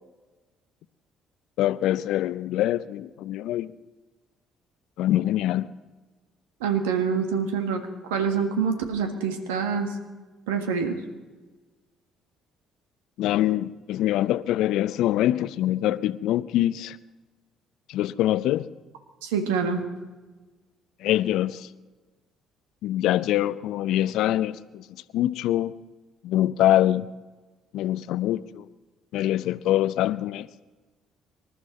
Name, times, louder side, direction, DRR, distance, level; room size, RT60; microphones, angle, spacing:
voice 1, 1.6-3.7 5.0-5.7 13.2-17.0 17.9-18.7 21.0-21.7 22.8-24.9 25.1-25.7 26.2-27.1 27.7-28.7 29.1-30.5, left 13 dB, 65° left, 16 dB, 0.6 m, -24 dB
voice 2, 6.6-9.9 10.5-11.0 19.2-19.8, right 6 dB, 80° right, 6 dB, 1.6 m, -26 dB
26.5 x 12.5 x 4.3 m, 1.3 s
hypercardioid pair, 50°, 0 cm